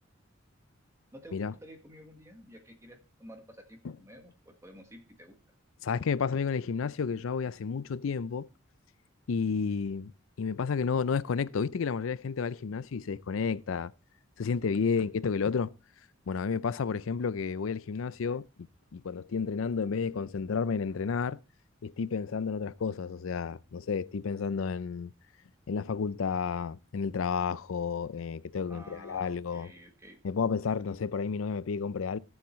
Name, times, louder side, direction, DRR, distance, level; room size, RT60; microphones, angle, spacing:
voice 1, 1.1-5.4 14.8-15.1 28.7-30.2, equal, 15° right, 1.6 m, -51 dB
voice 2, 5.8-8.5 9.3-10.1 10.4-13.9 14.4-15.7 16.3-18.4 18.9-21.4 21.8-25.1 25.7-29.7 30.2-32.2, left 5 dB, 85° left, 0.5 m, -31 dB
16.5 x 7.1 x 3.1 m
head